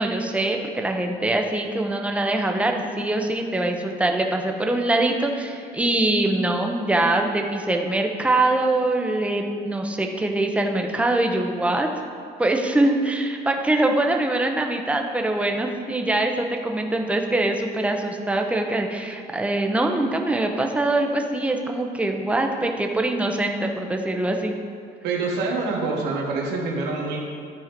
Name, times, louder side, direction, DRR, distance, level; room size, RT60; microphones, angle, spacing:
voice 1, 0.0-11.9 12.4-24.6, right 2 dB, 5° right, 3 dB, 0.8 m, -23 dB
voice 2, 25.0-27.2, right 3 dB, 90° right, -1 dB, 1.5 m, -26 dB
11.5 x 4.5 x 5.1 m, 2.3 s
cardioid pair, 110°, 17 cm